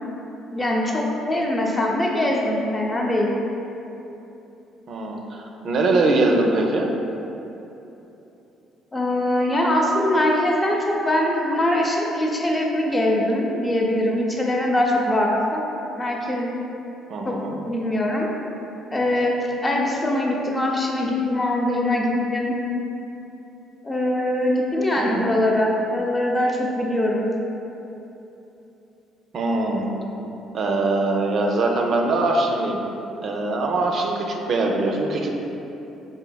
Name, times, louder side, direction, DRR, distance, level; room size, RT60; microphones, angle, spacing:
voice 1, 0.5-3.3 8.9-15.6 16.0-16.5 17.2-18.3 18.9-22.6 23.8-27.3, left 1 dB, 25° left, -1 dB, 0.6 m, -22 dB
voice 2, 4.9-6.9 17.1-17.5 25.0-25.3 29.3-29.9 30.5-32.8 33.2-35.4, right 2 dB, 55° right, 1 dB, 0.4 m, -22 dB
4.9 x 2.6 x 2.3 m, 3.0 s
hypercardioid pair, 55°, 0 cm